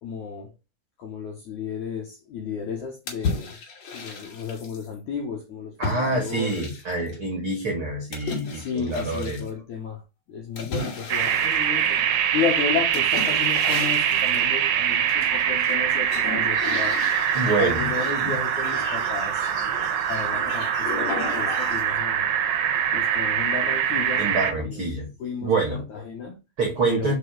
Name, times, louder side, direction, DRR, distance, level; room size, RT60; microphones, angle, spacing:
voice 1, 0.0-0.5 1.0-3.6 3.9-6.7 8.5-10.0 10.3-12.0 12.3-17.0 17.6-19.5 20.1-22.3 22.9-24.3 24.6-24.8 25.2-25.6 25.9-26.4 26.8-27.1, left 6 dB, 70° left, 1.9 m, -33 dB
sound 1, 3.1-4.9 5.8-7.1 8.1-9.5 10.6-12.3 12.9-14.5 15.1-15.7 16.0-22.0, left 4 dB, 45° left, 2.5 m, -34 dB
voice 2, 5.8-9.4 17.3-18.3 24.2-25.1 25.4-25.8 26.6-27.1, right 3 dB, 50° right, 1.6 m, -26 dB
sound 2, 11.1-24.5, right 9 dB, 75° right, 2.2 m, -24 dB
5.5 x 5.0 x 4.9 m
omnidirectional pair, 4.9 m